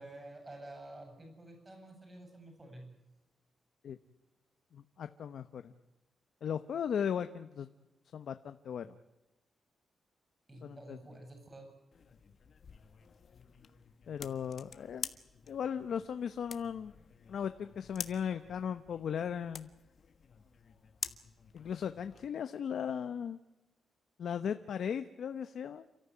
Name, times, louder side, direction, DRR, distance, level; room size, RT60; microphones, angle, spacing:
voice 1, 0.0-2.9 10.5-11.7, right 1 dB, 20° right, 5 dB, 7.8 m, -50 dB
voice 2, 4.7-5.7 6.4-7.7 8.1-8.9 10.6-11.0 14.1-15.1 15.5-16.9 17.3-19.7 21.5-23.4 24.2-25.8, left 8 dB, 65° left, 10 dB, 1.0 m, -37 dB
sound 1, 11.9-22.3, left 6 dB, 50° left, 1.4 m, -48 dB
29.5 x 14.0 x 9.7 m, 1.0 s
wide cardioid pair, 135°, 0 cm